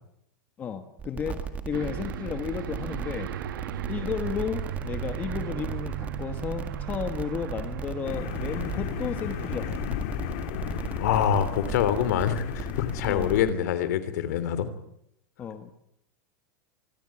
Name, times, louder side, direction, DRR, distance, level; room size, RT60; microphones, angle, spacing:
voice 1, 0.6-3.3 3.9-9.8 13.0-13.3 15.4-15.7, left 7 dB, 15° left, 8 dB, 1.2 m, -33 dB
sound 1, 1.0-13.5, right 6 dB, 15° right, 1.8 m, -36 dB
Aircraft, 1.7-9.8, right 10 dB, 80° right, 1.3 m, -37 dB
sound 2, 8.0-13.5, left 12 dB, 40° left, 1.9 m, -35 dB
voice 2, 11.0-14.7, left 9 dB, 55° left, 14 dB, 3.3 m, -25 dB
26.0 x 21.0 x 8.7 m, 0.76 s
supercardioid pair, 180°, 10 cm